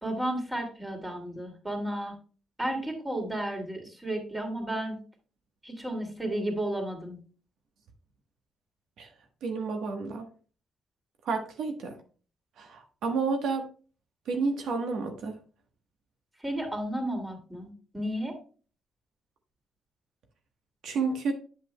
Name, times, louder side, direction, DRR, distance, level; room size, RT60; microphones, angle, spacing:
voice 1, 0.0-2.1 2.6-5.0 5.6-7.2 16.4-18.3, right 1 dB, 10° right, 3 dB, 2.6 m, -33 dB
voice 2, 9.4-10.3 11.2-12.0 12.6-13.6 14.3-15.3 20.8-21.3, right 4 dB, 75° right, 4 dB, 1.2 m, -30 dB
8.1 x 7.7 x 2.2 m, 0.38 s
cardioid pair, 90°, 0 cm